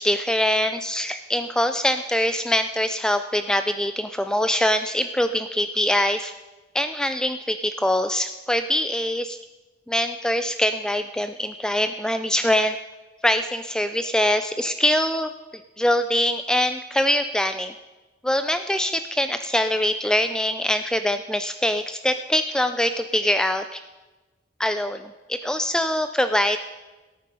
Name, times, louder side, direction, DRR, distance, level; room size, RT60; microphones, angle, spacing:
voice 1, 0.0-6.3 6.7-9.4 9.9-12.8 13.2-15.3 15.8-17.7 18.2-23.8 24.6-26.6, left 1 dB, 5° left, 9 dB, 0.3 m, -23 dB
17.0 x 9.0 x 5.4 m, 1.2 s
head